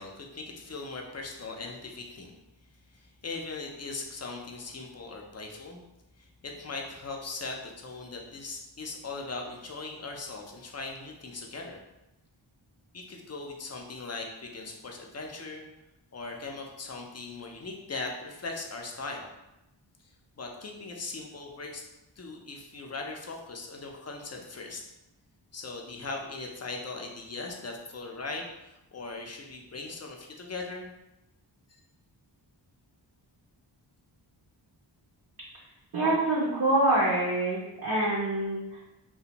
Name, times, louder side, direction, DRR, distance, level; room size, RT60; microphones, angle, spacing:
voice 1, 0.0-2.3 2.9-5.8 6.2-11.8 12.9-15.7 16.1-19.3 20.4-21.9 22.2-24.8 25.5-30.9, left 3 dB, 35° left, 1 dB, 0.4 m, -39 dB
voice 2, 35.9-38.6, right 1 dB, 50° right, -5 dB, 0.6 m, -25 dB
2.5 x 2.1 x 2.8 m, 0.93 s
wide cardioid pair, 70°, 47 cm